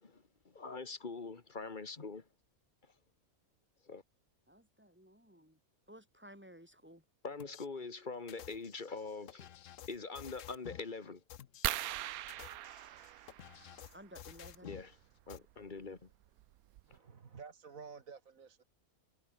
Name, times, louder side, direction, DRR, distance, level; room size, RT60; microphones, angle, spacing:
voice 1, 0.0-2.2 3.9-4.0 7.2-9.5 9.9-11.2 14.6-14.9 15.3-16.1, left 4 dB, 35° left, 1.7 m, -44 dB
voice 2, 4.5-5.6 5.9-7.0 13.9-14.8, equal, 5° right, 5.8 m, -56 dB
sound 1, 7.4-7.7 8.3-10.9 11.3-11.7 12.2-14.9 15.3-15.4, left 10 dB, 65° left, 1.1 m, -52 dB
sound 2, 11.6-14.0 15.6-15.8 16.4-16.5 16.8-17.0, right 15 dB, 90° right, 1.1 m, -40 dB
voice 3, 16.9-18.6, right 6 dB, 70° right, 2.0 m, -51 dB
omnidirectional pair, 1.5 m